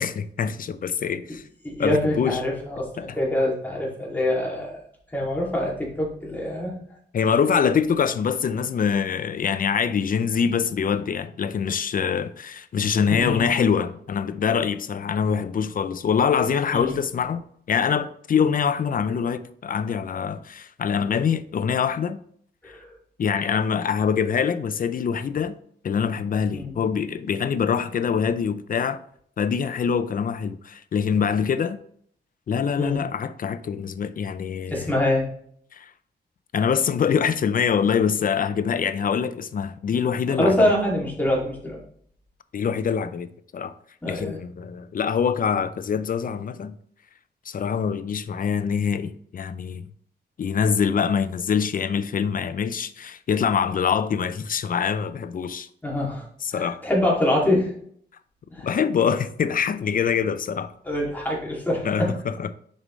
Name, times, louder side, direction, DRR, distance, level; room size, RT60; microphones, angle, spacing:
voice 1, 0.0-1.4 1.8-2.4 3.0-3.1 7.1-22.2 23.2-25.6 25.8-29.0 29.4-31.8 32.5-34.9 35.7-35.9 36.5-40.7 42.5-43.3 43.5-43.7 44.1-46.7 47.5-49.9 50.4-55.7 56.4-56.8 58.6-60.7 61.8-62.5, left 7 dB, 50° left, 0.4 m, -24 dB
voice 2, 1.6-4.8 5.1-6.8 13.1-13.4 16.7-17.0 22.6-22.9 26.5-26.7 32.8-33.0 34.7-35.3 40.4-41.8 44.0-44.4 55.8-56.2 56.5-57.7 58.5-58.7 60.8-62.1, left 1 dB, 10° left, 2.3 m, -24 dB
6.6 x 5.2 x 3.1 m
cardioid pair, 100°, 18 cm